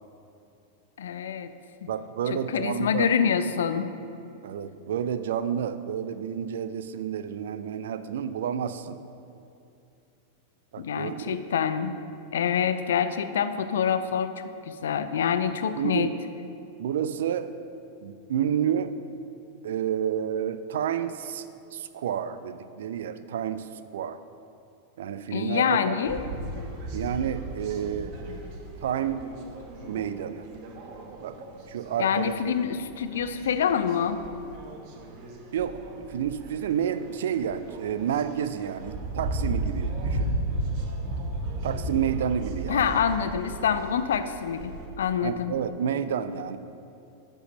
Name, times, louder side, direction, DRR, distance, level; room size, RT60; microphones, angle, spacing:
voice 1, 1.0-1.5 1.8-1.9 2.3-3.9 10.8-11.9 12.3-16.1 25.3-26.3 32.0-34.2 42.7-45.6, left 7 dB, 60° left, 11 dB, 0.5 m, -26 dB
voice 2, 1.9-3.1 4.4-9.0 10.7-11.4 15.8-16.1 16.8-17.6 18.0-19.0 19.6-24.2 25.0-25.9 26.9-28.2 28.8-29.3 29.9-30.5 31.2-31.4 31.7-32.5 35.5-40.3 41.6-43.0 45.2-46.6, right 9 dB, 60° right, 13 dB, 0.4 m, -30 dB
sound 1, 26.1-44.9, right 1 dB, 45° right, 1.2 m, -35 dB
11.0 x 5.5 x 5.4 m, 2.6 s
figure-of-eight pair, 90°, 0 cm